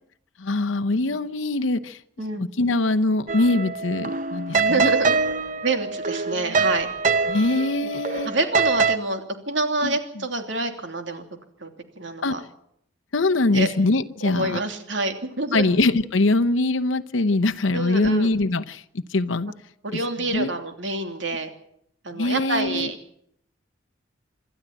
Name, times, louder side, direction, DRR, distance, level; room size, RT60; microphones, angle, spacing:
voice 1, 0.4-2.0 2.4-4.9 7.3-8.3 9.8-10.0 12.2-12.3 13.1-14.6 15.5-18.8 19.1-19.5 20.3-20.5 22.1-22.9, left 2 dB, 85° left, 8 dB, 0.8 m, -22 dB
sound 1, 3.3-9.0, right 4 dB, 40° right, 0.8 m, -24 dB
voice 2, 4.5-5.2 5.6-6.9 8.2-11.2 11.6-11.7 12.0-12.4 13.5-13.7 14.2-15.7 17.7-18.3 19.8-21.5 22.0-23.0, right 2 dB, 70° right, 5 dB, 3.0 m, -27 dB
26.5 x 13.0 x 8.8 m, 0.72 s
head